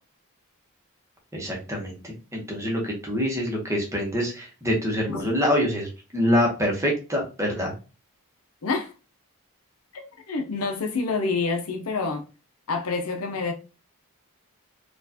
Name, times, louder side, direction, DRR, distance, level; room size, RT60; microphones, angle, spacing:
voice 1, 1.3-7.7, equal, 15° right, 0.9 m, -25 dB
voice 2, 9.9-12.2 12.7-13.5, left 4 dB, 75° left, 0.7 m, -27 dB
4.4 x 2.4 x 2.7 m
head